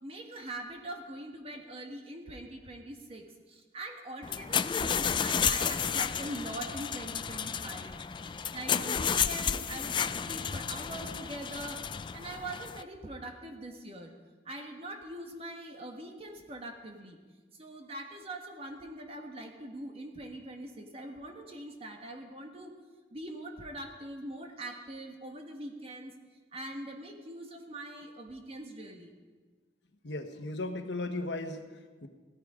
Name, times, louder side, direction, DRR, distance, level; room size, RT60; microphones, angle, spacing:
voice 1, 0.0-11.8 12.1-14.1 14.5-17.2 17.5-22.8 23.1-26.1 26.5-29.1, right 1 dB, 35° right, 3 dB, 1.7 m, -43 dB
sound 1, 4.2-12.8, left 7 dB, 25° left, 0.4 m, -32 dB
voice 2, 30.0-32.1, left 2 dB, 80° left, 6 dB, 1.2 m, -36 dB
16.5 x 13.5 x 5.0 m, 1.4 s
head